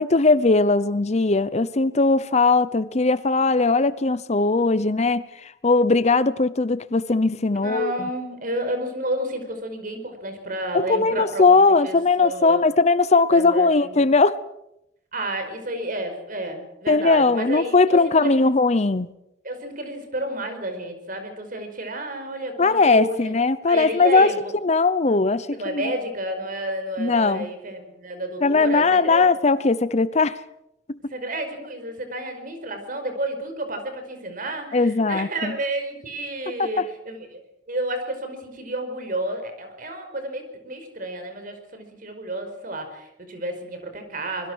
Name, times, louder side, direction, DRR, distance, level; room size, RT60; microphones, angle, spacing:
voice 1, 0.0-7.9 10.7-14.4 16.9-19.1 22.6-24.3 24.6-25.9 27.0-27.5 28.4-30.4 30.9-31.1 34.7-35.6 36.6-36.9, left 3 dB, 40° left, 16 dB, 0.7 m, -19 dB
voice 2, 7.6-12.6 13.3-13.9 15.1-18.5 19.4-23.3 23.7-24.5 25.5-29.3 31.1-44.5, right 1 dB, 50° right, 7 dB, 4.9 m, -31 dB
25.0 x 21.5 x 6.3 m, 0.82 s
head